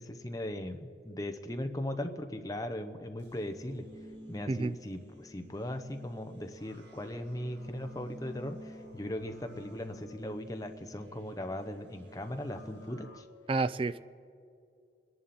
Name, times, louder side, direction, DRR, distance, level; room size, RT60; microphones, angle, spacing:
voice 1, 0.0-3.9 4.3-13.2, left 1 dB, 20° left, 6 dB, 0.8 m, -38 dB
sound 1, 3.2-13.2, equal, 70° right, 1.9 m, -51 dB
voice 2, 13.5-14.0, right 3 dB, 30° right, 15 dB, 0.3 m, -29 dB
26.5 x 11.0 x 4.3 m, 2.5 s
head